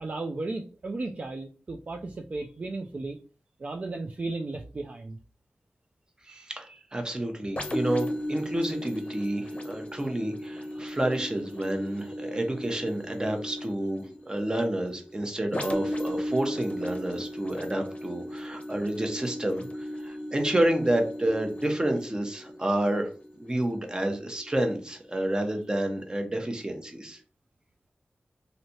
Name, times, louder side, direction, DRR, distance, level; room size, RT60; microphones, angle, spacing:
voice 1, 0.0-3.2 3.6-5.2, right 2 dB, 45° right, 2 dB, 0.3 m, -35 dB
voice 2, 6.2-23.1 23.4-27.2, right 1 dB, 25° right, 4 dB, 0.7 m, -29 dB
sound 1, 7.6-25.1 25.6-25.8, equal, 40° left, 0.7 m, -36 dB
3.2 x 2.6 x 2.7 m, 0.37 s
wide cardioid pair, 95°, 3 cm